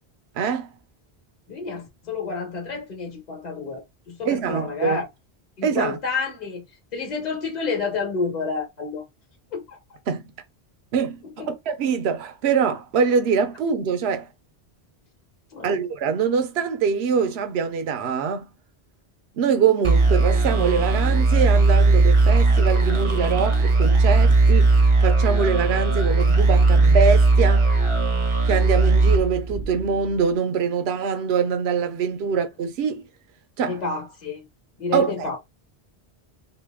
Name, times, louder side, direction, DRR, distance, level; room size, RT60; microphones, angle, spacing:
voice 1, 0.4-0.7 4.2-5.0 5.6-6.0 10.1-10.2 10.9-11.2 11.5-14.3 15.6-18.5 19.4-27.8 28.5-33.1 33.6-33.8 34.9-35.3, right 6 dB, 80° right, 0.9 m, -24 dB
voice 2, 1.5-5.1 5.6-6.6 6.9-9.1 9.5-9.8 11.4-11.5 15.5-15.8 32.3-32.4 33.7-34.4 34.8-35.4, left 4 dB, 40° left, 1.1 m, -29 dB
sound 1, 19.8-30.1, right 3 dB, 35° right, 0.6 m, -18 dB
2.9 x 2.8 x 3.4 m
omnidirectional pair, 1.1 m